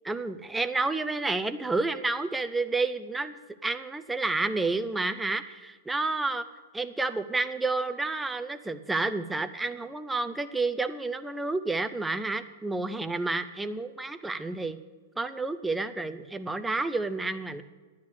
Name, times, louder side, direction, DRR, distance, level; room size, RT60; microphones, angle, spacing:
voice 1, 0.1-6.5 6.7-14.8 15.2-17.6, right 3 dB, 5° right, 9 dB, 0.5 m, -30 dB
11.0 x 9.5 x 6.3 m, 1.4 s
supercardioid pair, 160°, 0 cm